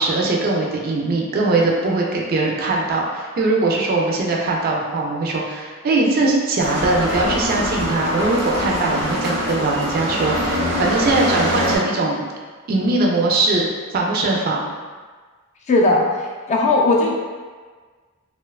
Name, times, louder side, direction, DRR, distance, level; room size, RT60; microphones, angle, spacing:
voice 1, 0.0-12.3 12.7-13.7 13.9-14.7, right 2 dB, 45° right, -1 dB, 0.4 m, -21 dB
sound 1, 6.6-11.8, equal, 85° right, 0.8 m, -23 dB
voice 2, 15.7-16.0 16.5-17.2, left 2 dB, 30° left, -1 dB, 0.3 m, -16 dB
2.8 x 2.1 x 2.3 m, 1.5 s
head